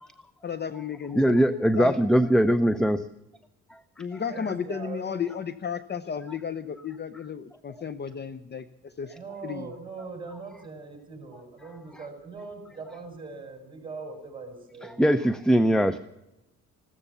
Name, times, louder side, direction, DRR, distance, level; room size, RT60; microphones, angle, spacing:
voice 1, 0.4-1.4 1.8-2.0 4.0-9.1 9.4-9.7, left 7 dB, 35° left, 12 dB, 0.8 m, -33 dB
voice 2, 1.2-3.0 15.0-16.0, equal, ahead, 13 dB, 0.6 m, -21 dB
voice 3, 4.3-5.1 9.1-15.2, right 4 dB, 15° right, 3 dB, 6.5 m, -41 dB
15.5 x 13.0 x 6.9 m, 0.92 s
cardioid pair, 90°, 30 cm